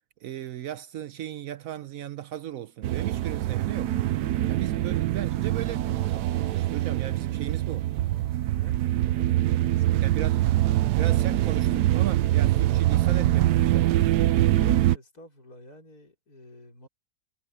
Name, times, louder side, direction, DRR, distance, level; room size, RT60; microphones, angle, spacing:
voice 1, 0.2-3.9 4.5-7.9 10.0-10.4 11.0-14.0, right 11 dB, 70° right, 1.0 m, -36 dB
sound 1, 2.8-15.0, right 14 dB, 85° right, 1.2 m, -24 dB
voice 2, 8.6-10.0 14.3-16.9, left 1 dB, 70° left, 5.6 m, -50 dB
omnidirectional pair, 1.7 m